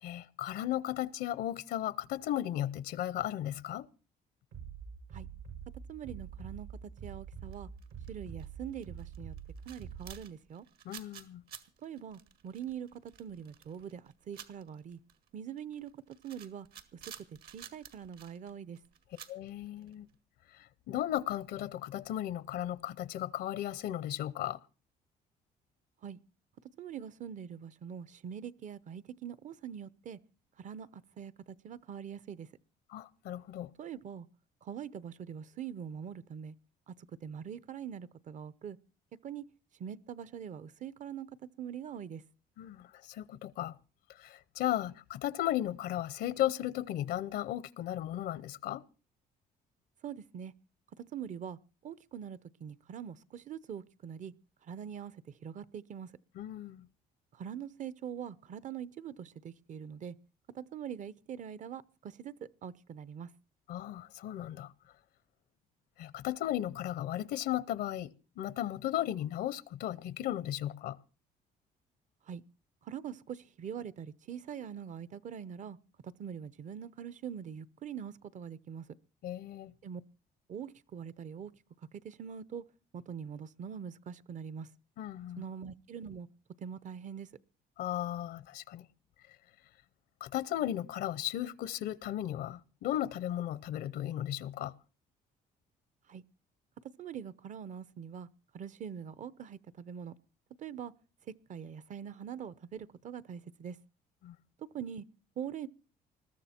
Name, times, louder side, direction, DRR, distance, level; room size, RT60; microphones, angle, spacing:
voice 1, 0.0-3.9 10.8-11.4 19.3-20.1 20.5-24.6 32.9-33.7 42.6-43.8 44.1-48.8 56.3-56.9 63.7-64.7 66.0-71.0 79.2-79.7 85.0-85.4 87.8-88.9 90.2-94.7 104.2-104.3, left 12 dB, 75° left, 0.8 m, -35 dB
Bass drum, 4.5-10.1, right 7 dB, 85° right, 7.0 m, -45 dB
voice 2, 5.9-7.7 8.1-9.3 9.7-10.7 11.8-15.0 15.3-16.7 16.9-17.0 17.5-18.8 26.0-26.2 26.8-30.2 30.6-32.5 33.8-34.3 34.6-36.5 36.9-37.0 37.2-38.8 39.2-39.4 39.8-42.2 50.0-50.5 51.0-51.6 51.8-54.3 54.7-55.1 55.4-56.1 57.3-60.1 60.5-62.3 62.6-63.3 72.3-72.4 72.8-75.8 76.0-78.9 79.8-80.0 80.5-81.5 81.9-82.6 82.9-84.7 85.4-86.3 86.6-87.3 96.1-96.2 97.0-98.3 98.5-100.1 100.6-100.9 101.5-103.8 104.6-105.0 105.4-105.7, right 8 dB, 45° right, 0.8 m, -43 dB
sound 1, 7.5-8.5 8.7-20.1, right 8 dB, 65° right, 1.9 m, -52 dB
21.0 x 13.5 x 4.4 m
cardioid pair, 110°, 17 cm